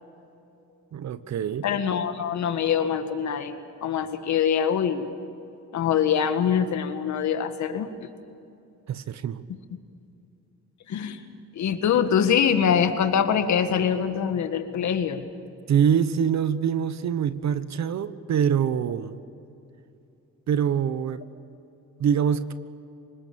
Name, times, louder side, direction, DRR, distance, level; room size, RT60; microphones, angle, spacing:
voice 1, 0.9-1.7 8.9-9.4 15.7-19.2 20.5-21.2 22.0-22.5, right 8 dB, 70° right, 14 dB, 1.1 m, -24 dB
voice 2, 1.6-5.0 5.7-7.9 10.9-11.2 11.5-15.2, left 8 dB, 75° left, 8 dB, 1.9 m, -24 dB
25.0 x 20.5 x 7.0 m, 2.7 s
cardioid pair, 90°, 29 cm